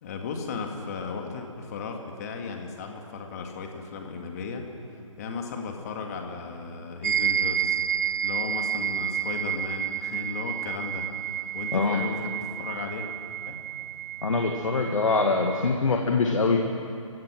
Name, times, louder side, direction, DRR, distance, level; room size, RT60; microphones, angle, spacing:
voice 1, 0.0-4.7 5.2-7.8 8.2-11.1 11.5-13.1 13.5-13.6, left 5 dB, 30° left, 3 dB, 2.1 m, -35 dB
sound 1, 7.0-15.7, right 10 dB, 30° right, 0.5 m, -30 dB
voice 2, 11.7-12.1 14.2-16.6, left 4 dB, 75° left, 2 dB, 1.9 m, -24 dB
28.0 x 16.5 x 6.2 m, 2.7 s
hypercardioid pair, 160°, 17 cm